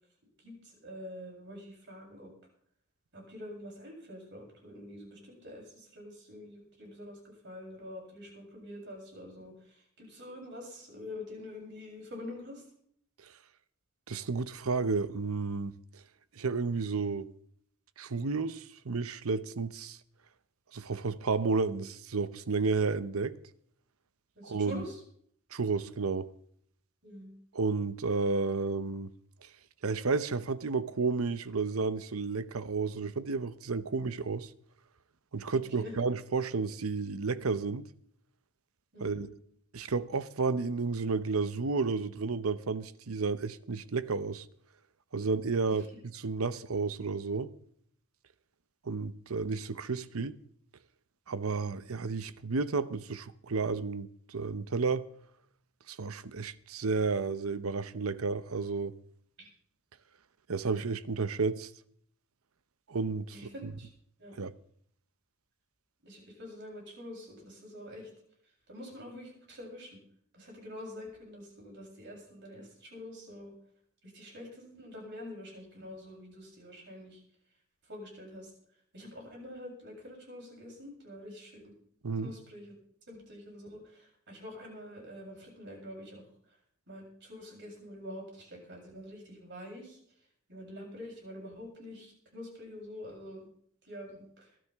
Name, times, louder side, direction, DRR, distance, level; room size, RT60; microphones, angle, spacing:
voice 1, 0.8-2.3 3.1-12.6 24.4-25.0 27.0-27.3 35.5-35.9 38.9-39.3 45.7-45.8 59.4-59.5 63.3-63.9 64.2-64.4 66.0-68.1 68.7-70.0 70.3-73.5 74.0-77.2 77.9-78.5 78.9-81.7 82.2-82.7 83.1-86.2 86.9-90.0 90.5-93.5 93.8-94.5, left 1 dB, 55° right, 7.7 m, -46 dB
voice 2, 14.1-16.0 16.3-17.3 18.0-20.0 20.7-23.4 24.4-24.8 25.5-26.3 27.5-29.1 29.4-29.5 29.8-34.5 35.3-37.8 39.0-39.3 39.7-44.5 45.1-47.5 48.8-50.4 51.3-55.1 55.9-58.9 60.5-61.7 62.9-63.7 64.3-64.5 82.0-82.3, right 4 dB, 90° right, 0.8 m, -32 dB
21.5 x 13.0 x 3.6 m
head